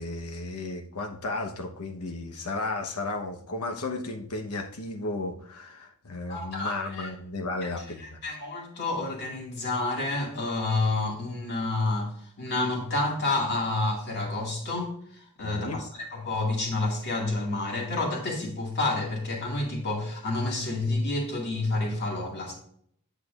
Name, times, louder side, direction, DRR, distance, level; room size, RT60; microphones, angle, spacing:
voice 1, 0.0-8.2 15.4-15.8, left 2 dB, 85° left, 1.0 m, -34 dB
voice 2, 6.3-7.1 7.6-7.7 8.0-12.1 12.4-15.8 16.1-22.5, left 2 dB, 50° left, 2.0 m, -29 dB
8.3 x 7.1 x 2.4 m
head